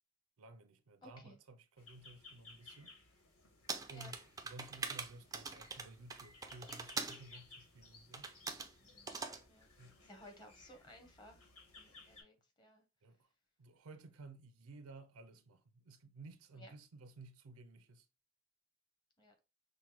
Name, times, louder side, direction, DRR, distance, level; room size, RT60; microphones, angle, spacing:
voice 1, 0.4-2.9 3.9-4.2 4.4-8.3 9.8-10.0 13.0-13.3 13.6-18.1, right 2 dB, 80° right, 0.5 m, -55 dB
voice 2, 1.0-1.4 3.9-4.1 8.8-11.5 11.7-12.8 16.6-16.7 19.2-19.3, equal, 20° left, 1.0 m, -59 dB
sound 1, 1.8-12.2, left 3 dB, 85° left, 1.6 m, -60 dB
sound 2, 3.7-7.2 8.1-8.7 9.1-9.4, right 4 dB, 15° right, 0.3 m, -43 dB
5.8 x 2.1 x 3.0 m
head